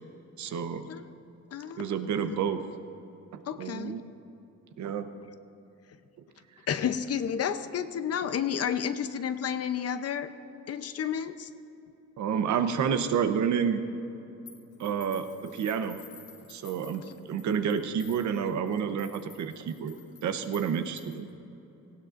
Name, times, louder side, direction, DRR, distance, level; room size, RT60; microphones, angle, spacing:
voice 1, 0.4-0.9 1.8-2.6 3.3-4.0 4.8-5.1 12.2-13.8 14.8-16.0 16.5-19.9 20.2-21.2, right 7 dB, 70° right, 8 dB, 0.9 m, -29 dB
voice 2, 1.5-2.4 3.5-4.0 6.7-10.3 10.7-11.5, left 8 dB, 55° left, 10 dB, 0.7 m, -31 dB
sound 1, 14.5-21.3, left 6 dB, 75° left, 2.3 m, -53 dB
18.5 x 16.0 x 2.6 m, 2.9 s
cardioid pair, 90°, 30 cm